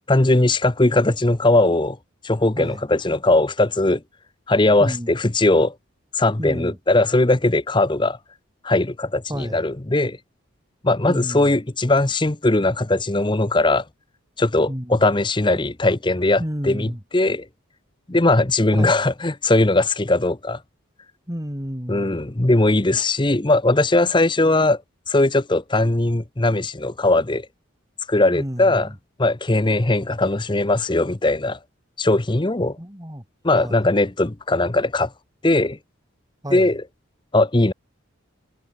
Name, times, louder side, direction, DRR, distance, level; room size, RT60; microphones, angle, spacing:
voice 1, 0.1-2.0 2.2-4.0 4.5-5.7 6.1-8.2 8.6-10.2 10.8-13.8 14.4-17.5 18.1-20.6 21.9-24.8 25.1-27.5 28.1-28.9 29.2-31.6 32.0-32.8 33.4-35.1 35.4-35.8 36.5-36.8 37.3-37.7, left 2 dB, 25° left, 0.8 m, -19 dB
voice 2, 4.8-5.1 6.4-6.8 9.3-9.7 11.0-11.6 14.7-15.1 16.4-17.0 18.7-19.0 21.3-22.2 28.3-28.9 32.8-33.2 33.5-33.9 36.4-36.7, equal, 15° right, 4.1 m, -31 dB
head